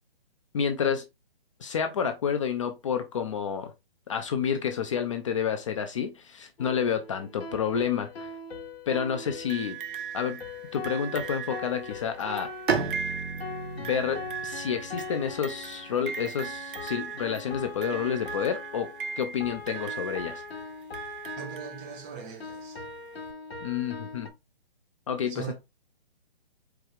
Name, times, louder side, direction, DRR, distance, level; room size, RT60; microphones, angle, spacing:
voice 1, 0.5-1.0 1.6-3.7 4.1-8.3 8.9-9.8 10.1-10.4 10.7-12.5 13.8-18.9 19.2-20.4 23.6-24.3 25.1-25.5, left 7 dB, 30° left, 0.5 m, -29 dB
sound 1, 6.6-24.3, left 4 dB, 80° left, 1.3 m, -41 dB
sound 2, 9.5-22.3 23.3-23.4, right 8 dB, 60° right, 0.5 m, -39 dB
Bowed string instrument, 12.7-16.3, right 5 dB, 85° right, 1.3 m, -34 dB
voice 2, 21.4-22.8 25.3-25.5, right 8 dB, 20° right, 0.7 m, -40 dB
4.6 x 2.3 x 4.8 m
hypercardioid pair, 145°, 30 cm